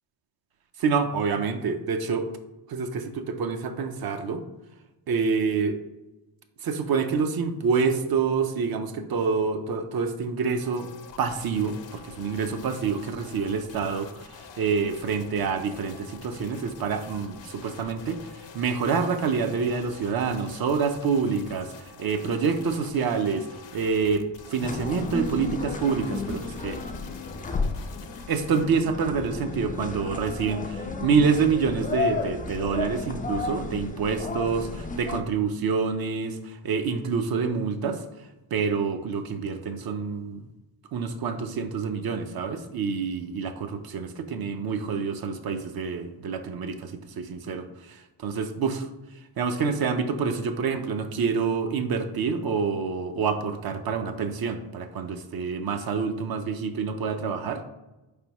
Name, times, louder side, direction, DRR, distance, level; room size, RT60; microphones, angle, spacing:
voice 1, 0.8-2.3 2.7-4.4 5.1-5.8 6.6-10.9 11.2-23.5 23.7-24.2 24.5-26.8 28.3-38.0 38.5-40.5 40.9-48.9 49.4-57.6, right 5 dB, 50° right, 8 dB, 0.6 m, -27 dB
sound 1, 10.6-28.7, left 5 dB, 60° left, 0.7 m, -47 dB
sound 2, 24.6-35.2, left 3 dB, 20° left, 0.3 m, -33 dB
4.4 x 3.4 x 2.9 m, 1.0 s
cardioid pair, 70°, 49 cm